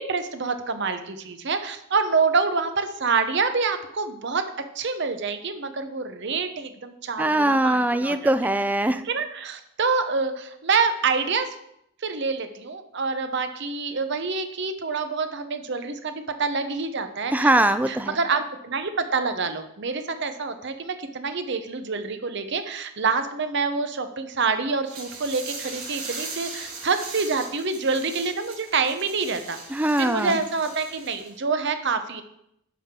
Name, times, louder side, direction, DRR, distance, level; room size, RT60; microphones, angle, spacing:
voice 1, 0.0-4.5 4.7-8.3 9.0-11.6 12.0-16.1 16.4-17.5 17.9-32.2, right 4 dB, 55° right, 9 dB, 0.7 m, -27 dB
voice 2, 7.2-9.0 17.3-18.2 29.7-30.4, right 1 dB, 5° right, 10 dB, 0.3 m, -21 dB
sound 1, 24.9-31.4, right 4 dB, 85° right, 3.3 m, -39 dB
10.0 x 5.6 x 3.7 m, 0.78 s
head